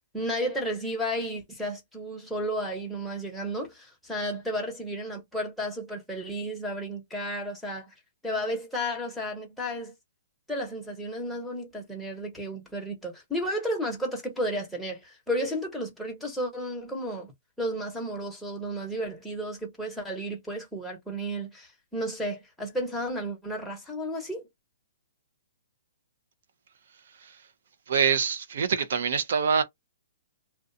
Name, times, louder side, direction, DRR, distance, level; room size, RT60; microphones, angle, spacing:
voice 1, 0.0-7.9 8.2-9.9 10.5-17.3 17.6-24.5, equal, ahead, 0.9 m, -33 dB
voice 2, 27.9-29.6, right 7 dB, 65° right, 0.6 m, -25 dB
2.5 x 2.2 x 2.6 m
hypercardioid pair, 155°, 0 cm